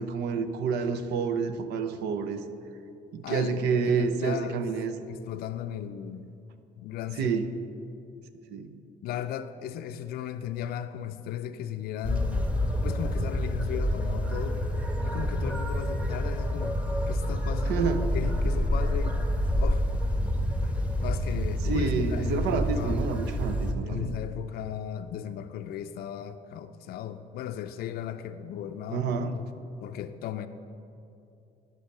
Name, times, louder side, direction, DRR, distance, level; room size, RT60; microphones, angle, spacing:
voice 1, 0.0-2.4 3.1-5.0 7.2-7.5 8.5-8.7 17.7-18.1 21.6-24.2 28.9-29.3, right 5 dB, 80° right, 9 dB, 0.7 m, -29 dB
voice 2, 3.2-4.7 5.1-6.3 6.8-7.3 9.0-12.5 12.8-14.7 15.0-19.2 19.6-19.8 21.0-23.1 23.8-29.5 29.8-30.5, left 10 dB, 65° left, 8 dB, 0.4 m, -36 dB
sound 1, 12.0-23.7, equal, 10° right, 1.1 m, -28 dB
11.5 x 5.6 x 6.6 m, 2.6 s
cardioid pair, 110°, 17 cm